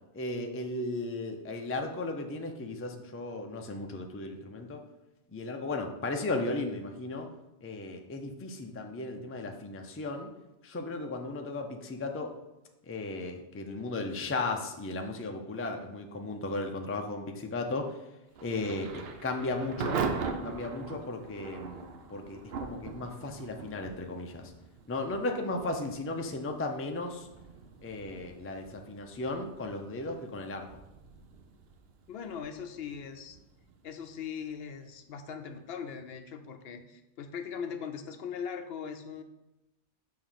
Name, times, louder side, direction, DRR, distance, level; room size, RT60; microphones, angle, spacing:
voice 1, 0.1-4.8 5.3-7.3 7.6-10.3 10.6-12.3 12.8-18.0 18.4-20.0 20.4-24.5 24.9-27.3 27.8-30.7, left 2 dB, 20° left, 4 dB, 0.4 m, -35 dB
Thunder / Rain, 18.3-35.1, right 5 dB, 65° right, 0.8 m, -41 dB
voice 2, 32.1-33.4 33.8-39.2, left 7 dB, 65° left, 8 dB, 0.7 m, -40 dB
6.9 x 3.1 x 5.6 m, 0.95 s
omnidirectional pair, 1.2 m